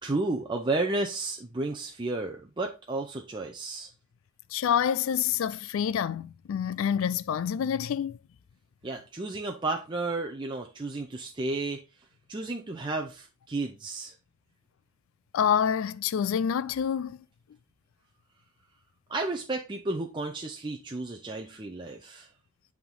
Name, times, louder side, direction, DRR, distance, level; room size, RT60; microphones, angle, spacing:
voice 1, 0.0-3.9 8.8-11.8 12.3-14.1 19.1-22.3, right 2 dB, 25° right, 0.6 m, -32 dB
voice 2, 4.5-8.2 15.3-17.2, left 8 dB, 70° left, 0.3 m, -27 dB
8.6 x 3.6 x 3.8 m
head